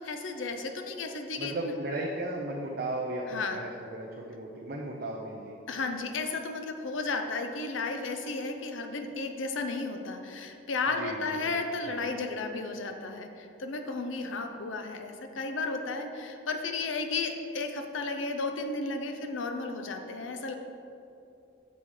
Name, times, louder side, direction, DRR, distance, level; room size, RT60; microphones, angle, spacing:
voice 1, 0.0-1.7 3.3-3.6 5.7-20.5, left 3 dB, 80° left, 5 dB, 0.6 m, -33 dB
voice 2, 1.4-5.6 11.0-11.5 11.9-12.1, right 1 dB, 55° right, -2 dB, 0.6 m, -36 dB
7.1 x 5.5 x 4.8 m, 2.7 s
head